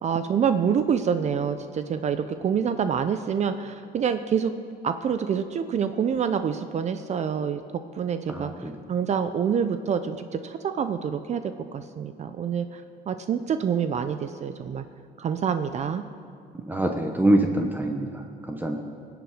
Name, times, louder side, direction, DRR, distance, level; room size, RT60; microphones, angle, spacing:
voice 1, 0.0-4.5 4.8-7.6 8.0-8.5 8.9-11.4 11.7-14.8 15.2-16.0, right 7 dB, 40° right, 10 dB, 0.6 m, -26 dB
voice 2, 8.3-8.7 16.7-18.8, right 1 dB, 10° right, 3 dB, 1.0 m, -25 dB
21.0 x 8.2 x 5.0 m, 2.3 s
cardioid pair, 110°, 17 cm